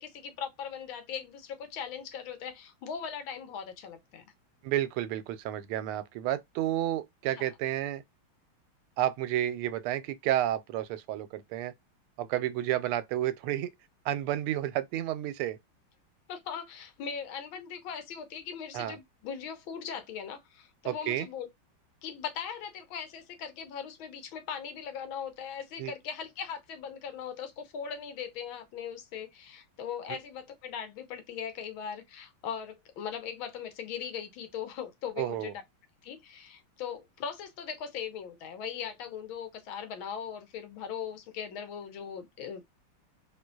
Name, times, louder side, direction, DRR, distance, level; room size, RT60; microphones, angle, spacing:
voice 1, 0.0-4.2 7.4-7.5 16.3-21.5 22.0-35.6 36.0-42.7, left 7 dB, 75° left, 1.6 m, -39 dB
voice 2, 4.6-8.0 9.0-11.7 12.2-13.7 14.0-15.6 18.7-19.0 20.8-21.3 25.8-25.9 35.2-35.5, right 13 dB, 90° right, 1.5 m, -31 dB
3.8 x 2.8 x 2.2 m
omnidirectional pair, 2.3 m